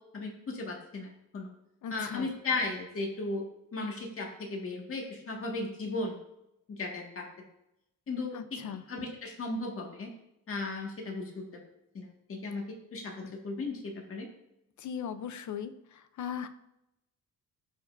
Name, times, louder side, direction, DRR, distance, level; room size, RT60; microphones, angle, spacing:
voice 1, 0.1-1.5 1.9-3.4 3.7-6.2 6.7-7.2 8.1-8.6 8.9-10.1 10.5-11.4 11.9-12.6 12.9-14.3, left 3 dB, 40° left, -1 dB, 1.9 m, -36 dB
voice 2, 1.8-2.3 8.3-8.8 14.8-15.7 16.2-16.5, left 8 dB, 55° left, 11 dB, 0.7 m, -37 dB
15.5 x 5.3 x 2.6 m, 0.84 s
wide cardioid pair, 165°, 34 cm